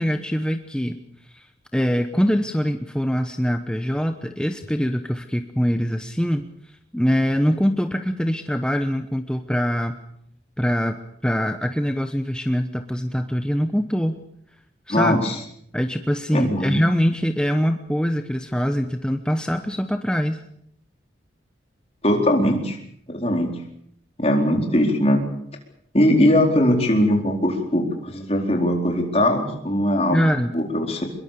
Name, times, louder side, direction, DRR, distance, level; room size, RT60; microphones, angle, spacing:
voice 1, 0.0-10.0 10.6-11.0 11.2-14.2 14.9-15.3 15.7-20.4 30.1-30.6, equal, 5° left, 7 dB, 1.0 m, -23 dB
voice 2, 14.9-15.3 16.3-16.8 22.0-22.8 23.1-23.6 24.2-25.2 25.9-30.2 30.5-31.0, left 1 dB, 35° left, 2 dB, 4.3 m, -20 dB
23.5 x 22.0 x 6.9 m, 0.69 s
head